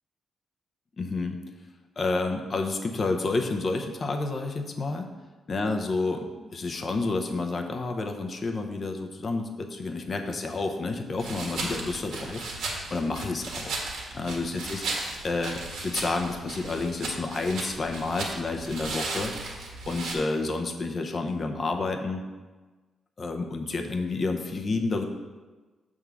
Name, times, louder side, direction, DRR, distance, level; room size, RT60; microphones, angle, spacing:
voice 1, 1.0-1.4 2.0-5.1 5.5-12.5 12.9-13.8 14.1-19.3 19.9-22.2 23.2-25.0, left 3 dB, 40° left, 4 dB, 0.7 m, -30 dB
sound 1, 11.2-20.1, right 3 dB, 85° right, 1.5 m, -36 dB
6.8 x 3.7 x 6.1 m, 1.3 s
cardioid pair, 120°, 0 cm